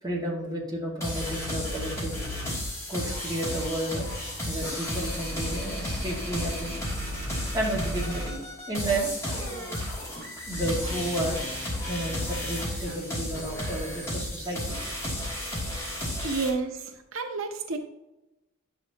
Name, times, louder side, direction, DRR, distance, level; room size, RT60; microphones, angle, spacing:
voice 1, 0.0-2.3 2.9-4.1 4.4-6.8 7.5-8.4 8.7-9.1 10.5-11.5 11.9-14.8 15.9-16.5, right 1 dB, 20° right, -4 dB, 2.0 m, -32 dB
sound 1, 1.0-16.5, left 1 dB, 15° left, 2.6 m, -33 dB
voice 2, 16.2-17.8, right 4 dB, 80° right, 5 dB, 0.8 m, -30 dB
10.0 x 6.8 x 2.9 m, 0.97 s
head